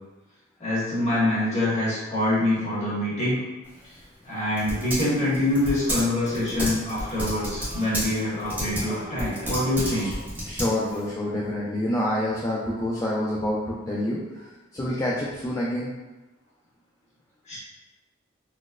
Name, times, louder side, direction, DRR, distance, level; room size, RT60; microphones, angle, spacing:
voice 1, 0.6-3.4 4.2-10.1 17.5-17.6, left 1 dB, 35° left, -10 dB, 1.4 m, -25 dB
Typing, 3.6-11.1, equal, 10° right, 0.8 m, -32 dB
voice 2, 9.8-10.1 10.4-14.2 14.7-15.9, left 1 dB, 15° left, -6 dB, 0.3 m, -27 dB
4.1 x 2.0 x 2.3 m, 1.1 s
head